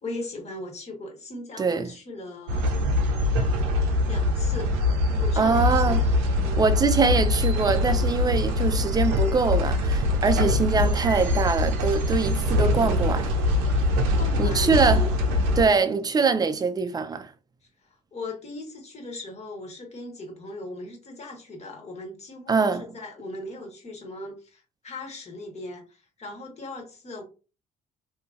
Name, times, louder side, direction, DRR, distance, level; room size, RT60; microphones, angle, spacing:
voice 1, 0.0-2.7 4.1-4.7 5.2-6.0 6.4-6.6 13.9-15.1 15.6-15.9 17.8-27.2, left 2 dB, 40° left, 1.3 m, -38 dB
voice 2, 1.6-1.9 5.4-6.0 6.6-13.3 14.4-15.1 15.6-17.3 22.5-22.8, right 4 dB, 20° right, 0.5 m, -23 dB
sound 1, 2.5-15.7, left 2 dB, 80° right, 0.6 m, -23 dB
2.8 x 2.6 x 2.4 m
hypercardioid pair, 60°, 18 cm